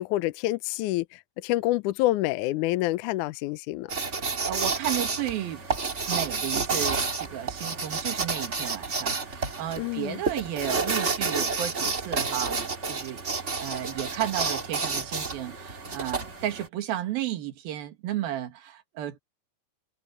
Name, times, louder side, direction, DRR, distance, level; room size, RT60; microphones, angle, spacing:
voice 1, 0.0-3.9 9.8-10.2, left 17 dB, 80° left, 1.8 m, -27 dB
sound 1, 3.9-16.7, right 4 dB, 25° right, 1.7 m, -30 dB
voice 2, 4.2-5.6 6.1-19.2, right 12 dB, 75° right, 3.7 m, -33 dB
omnidirectional pair, 4.3 m